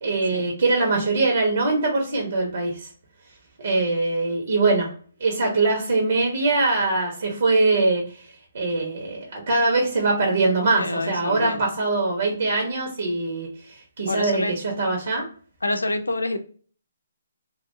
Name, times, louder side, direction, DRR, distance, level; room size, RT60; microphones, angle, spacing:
voice 1, 0.0-2.9 3.6-4.9 5.2-8.2 8.5-13.5 14.0-15.2, right 3 dB, 65° right, 0 dB, 1.1 m, -22 dB
voice 2, 10.8-11.6 14.1-14.5 15.6-16.4, left 2 dB, 90° left, 7 dB, 0.5 m, -27 dB
3.0 x 2.6 x 2.7 m, 0.43 s
figure-of-eight pair, 145°, 0 cm